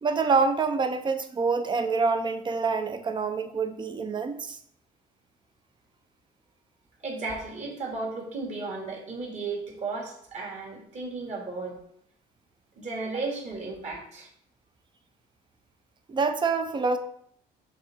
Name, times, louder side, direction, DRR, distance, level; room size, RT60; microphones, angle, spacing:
voice 1, 0.0-4.6 16.1-17.0, right 4 dB, 25° right, 8 dB, 0.7 m, -26 dB
voice 2, 7.0-11.8 12.8-14.3, right 3 dB, 45° right, -1 dB, 2.3 m, -34 dB
6.4 x 3.7 x 4.4 m, 0.68 s
cardioid pair, 110°, 17 cm